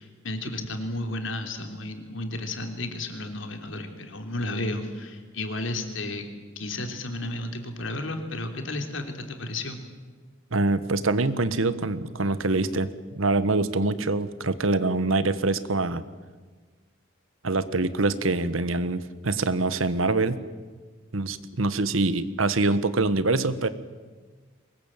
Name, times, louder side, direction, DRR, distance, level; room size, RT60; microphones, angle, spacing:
voice 1, 0.0-6.2 6.5-9.8, left 2 dB, 65° left, 6 dB, 3.4 m, -33 dB
voice 2, 10.5-12.9 13.2-16.0 17.4-20.4 21.1-23.7, right 2 dB, 80° right, 14 dB, 1.4 m, -24 dB
23.5 x 21.0 x 9.1 m, 1.4 s
head